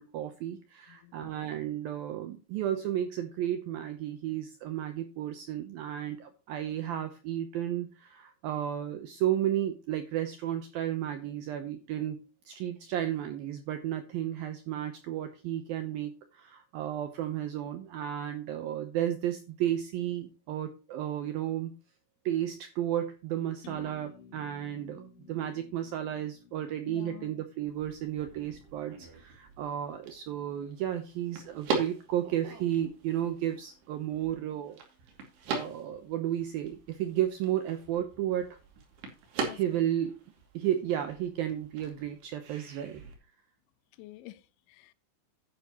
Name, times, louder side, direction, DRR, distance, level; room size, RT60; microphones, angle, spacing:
voice 1, 0.0-12.2 12.5-21.7 22.3-34.8 35.5-38.6 39.5-40.2 40.5-43.0, right 11 dB, 80° right, 2.1 m, -33 dB
voice 2, 0.9-1.5 26.9-27.4 39.4-39.8 44.0-44.9, left 17 dB, 85° left, 3.2 m, -49 dB
sound 1, 23.6-27.5, left 5 dB, 55° left, 3.3 m, -53 dB
sound 2, 27.7-43.1, right 4 dB, 65° right, 4.4 m, -41 dB
10.5 x 10.5 x 3.0 m
omnidirectional pair, 5.3 m